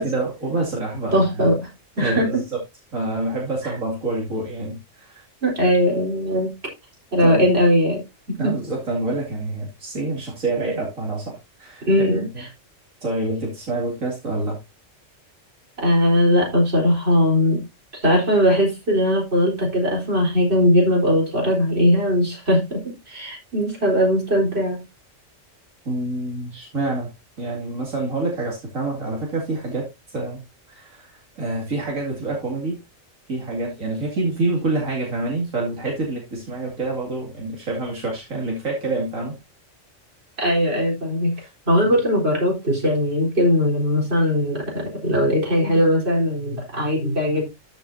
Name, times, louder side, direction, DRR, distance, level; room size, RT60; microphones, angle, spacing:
voice 1, 0.0-1.5 2.0-2.6 2.9-5.2 7.2-7.4 8.4-12.3 13.0-14.6 25.8-27.1 27.4-30.4 30.7-32.8 33.3-39.3 41.4-41.5 41.8-42.0, right 2 dB, 80° right, -2 dB, 2.9 m, -27 dB
voice 2, 1.1-1.5 1.9-2.4 3.6-3.7 5.4-6.5 7.1-8.0 8.3-8.6 11.9-12.2 15.8-17.6 18.0-24.8 40.4-41.3 41.7-47.4, equal, 50° right, -2 dB, 4.5 m, -19 dB
13.5 x 6.9 x 2.7 m, 0.23 s
omnidirectional pair, 1.4 m